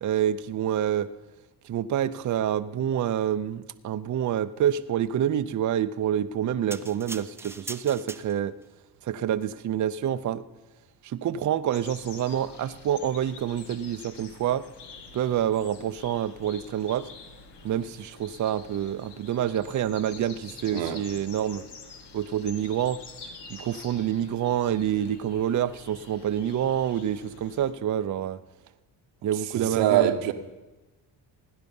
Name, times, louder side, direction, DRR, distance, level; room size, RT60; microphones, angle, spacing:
voice 1, 0.0-1.1 1.6-8.5 9.0-10.4 11.0-14.7 15.1-17.1 17.6-21.6 22.1-23.0 23.5-28.4 29.2-30.3, right 10 dB, 45° right, 0.6 m, -27 dB
sound 1, 6.7-8.7 9.3-9.5, right 2 dB, 5° right, 0.6 m, -41 dB
sound 2, 11.7-27.7, left 4 dB, 70° left, 1.7 m, -47 dB
voice 2, 29.5-30.3, right 11 dB, 90° right, 1.2 m, -23 dB
17.0 x 9.8 x 5.4 m
cardioid pair, 85°, 43 cm